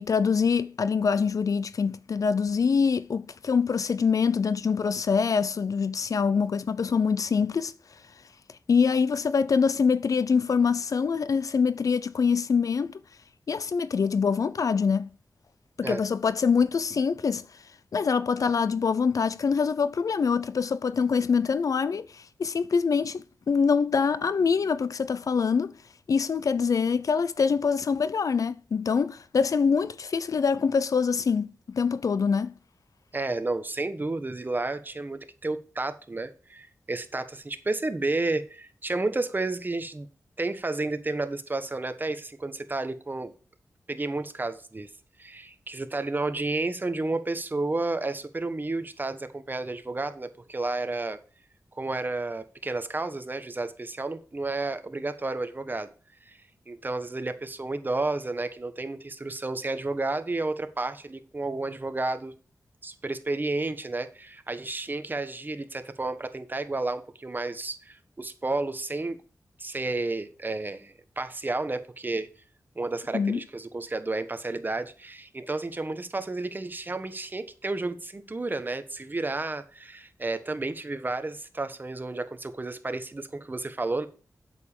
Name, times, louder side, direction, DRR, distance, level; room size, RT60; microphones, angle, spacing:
voice 1, 0.0-7.7 8.7-13.0 13.5-15.1 15.8-17.4 17.9-25.7 26.1-32.5 73.1-73.4, left 5 dB, 70° left, 0.6 m, -24 dB
voice 2, 33.1-40.1 40.4-43.3 43.9-44.9 45.2-51.2 51.7-55.9 56.2-56.4 56.7-62.3 62.8-69.2 69.6-72.3 72.7-84.1, right 2 dB, 30° right, 1.2 m, -31 dB
8.2 x 7.2 x 6.7 m
wide cardioid pair, 75°, 6 cm